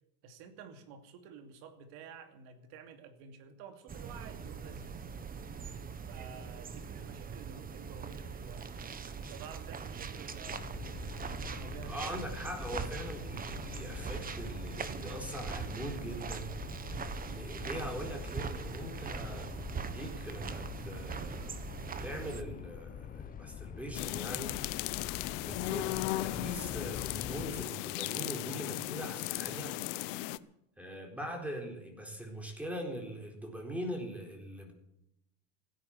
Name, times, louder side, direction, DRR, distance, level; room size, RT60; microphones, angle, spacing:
voice 1, 0.2-5.1 6.1-8.8 9.1-12.3, right 6 dB, 60° right, 7 dB, 2.7 m, -51 dB
sound 1, 3.9-22.4, right 6 dB, 20° right, 1.2 m, -41 dB
sound 2, 10.4-27.6, left 8 dB, 20° left, 0.7 m, -45 dB
voice 2, 11.9-16.6 17.2-24.9 25.4-29.8 30.8-34.7, equal, 5° right, 3 dB, 4.1 m, -42 dB
sound 3, 23.9-30.4, left 18 dB, 60° left, 0.8 m, -36 dB
16.0 x 10.0 x 7.9 m, 0.81 s
supercardioid pair, 115°, 43 cm